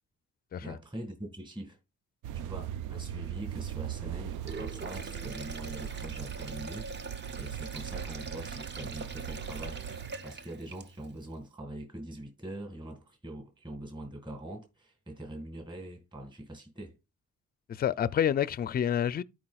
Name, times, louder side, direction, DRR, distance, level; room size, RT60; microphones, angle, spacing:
voice 1, 0.6-1.8 2.3-9.8 10.2-17.0, right 1 dB, 15° right, 1.9 m, -43 dB
sound 1, 2.2-10.1, right 9 dB, 85° right, 0.5 m, -39 dB
Sink (filling or washing), 4.3-11.2, right 4 dB, 35° right, 0.8 m, -43 dB
voice 2, 17.7-19.2, left 9 dB, 30° left, 0.4 m, -28 dB
13.0 x 4.7 x 2.3 m
cardioid pair, 90°, 30 cm